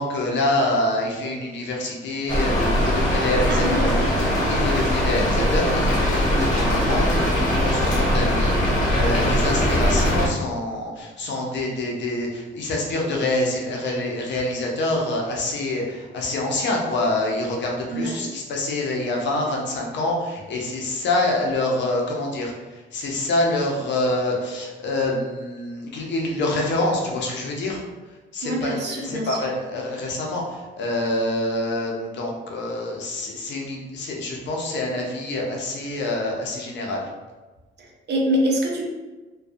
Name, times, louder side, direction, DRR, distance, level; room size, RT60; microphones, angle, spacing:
voice 1, 0.0-4.2 4.5-27.8 28.1-37.0, left 2 dB, 65° left, -1 dB, 0.6 m, -26 dB
Rain, 2.3-10.3, equal, 40° left, 0.9 m, -21 dB
voice 2, 3.5-4.2 17.9-18.3 28.4-29.4 37.8-38.9, right 1 dB, 60° right, -1 dB, 0.6 m, -25 dB
2.6 x 2.3 x 2.3 m, 1.2 s
cardioid pair, 90°, 20 cm